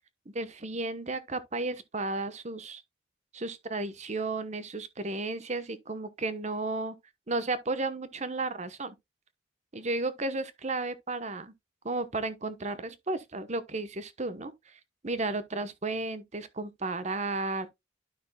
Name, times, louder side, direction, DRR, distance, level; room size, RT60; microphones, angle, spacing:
voice 1, 0.3-2.8 3.3-7.0 7.3-8.9 9.7-11.5 11.8-17.7, right 2 dB, 35° right, 0.9 m, -33 dB
12.0 x 5.7 x 2.2 m
head